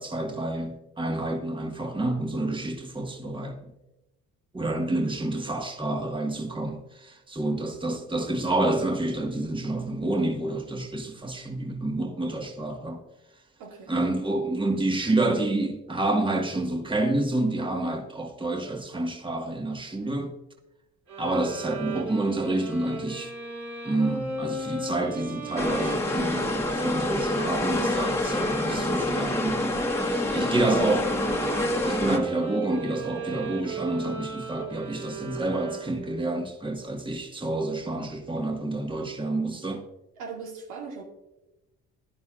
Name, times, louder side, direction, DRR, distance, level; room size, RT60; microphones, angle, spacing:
voice 1, 0.0-3.7 4.5-13.0 13.9-20.3 21.2-23.3 23.8-31.1 31.8-39.8, right 2 dB, 15° right, 1.7 m, -28 dB
voice 2, 13.6-13.9 40.2-41.0, right 5 dB, 85° right, 2.2 m, -39 dB
sound 1, 21.1-36.2, right 3 dB, 65° right, 4.0 m, -37 dB
sound 2, 25.6-32.2, left 1 dB, 10° left, 1.6 m, -27 dB
15.0 x 11.0 x 2.5 m
supercardioid pair, 75°, 30 cm